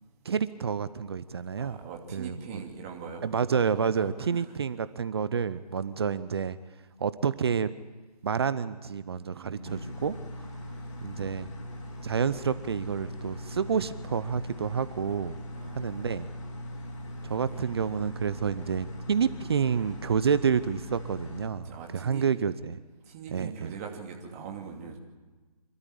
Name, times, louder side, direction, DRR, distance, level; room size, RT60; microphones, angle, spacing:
voice 1, 0.2-1.8 2.1-2.6 3.2-6.6 7.0-7.7 8.2-10.1 11.0-11.5 12.0-15.4 15.7-16.3 17.2-22.8 23.3-23.7, right 6 dB, 40° right, 15 dB, 0.7 m, -29 dB
voice 2, 1.5-3.2 4.0-4.4 9.3-9.9 15.5-16.0 21.6-22.2 23.0-25.0, right 6 dB, 25° right, 1 dB, 2.6 m, -42 dB
sound 1, 9.7-21.5, left 1 dB, 45° left, 3.6 m, -40 dB
26.5 x 13.0 x 8.8 m, 1.3 s
figure-of-eight pair, 155°, 20 cm